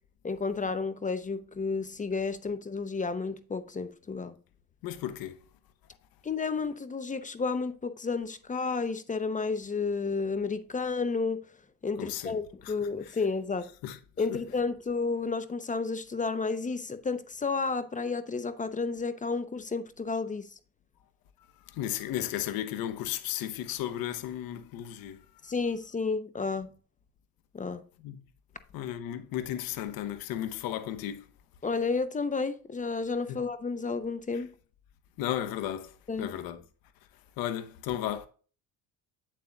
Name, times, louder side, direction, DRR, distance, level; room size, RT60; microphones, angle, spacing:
voice 1, 0.2-4.4 6.2-11.4 11.8-13.7 14.2-20.5 25.4-26.7 27.5-27.8 31.6-34.5 36.1-36.3, left 4 dB, 20° left, 0.7 m, -31 dB
voice 2, 4.8-5.4 12.0-12.7 13.1-13.2 13.8-14.0 14.3-14.4 21.7-25.2 28.0-28.2 28.7-31.3 33.3-33.4 34.3-34.4 35.2-36.6 37.4-38.3, left 11 dB, 70° left, 0.9 m, -34 dB
8.4 x 7.6 x 2.3 m
supercardioid pair, 90°, 37 cm